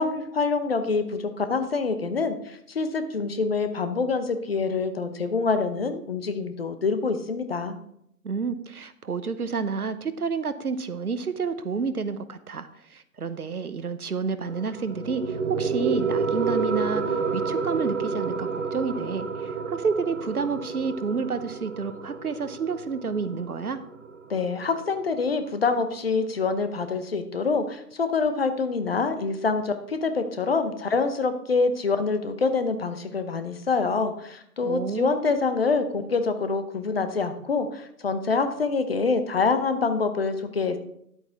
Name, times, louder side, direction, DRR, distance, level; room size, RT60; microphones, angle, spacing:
voice 1, 0.0-7.8 24.3-40.8, left 4 dB, 40° left, 9 dB, 0.9 m, -26 dB
voice 2, 8.2-23.8 34.6-35.1, right 5 dB, 70° right, 12 dB, 0.9 m, -30 dB
sound 1, 14.5-25.5, right 4 dB, 50° right, 1.2 m, -30 dB
11.0 x 8.3 x 3.6 m, 0.74 s
figure-of-eight pair, 140°, 47 cm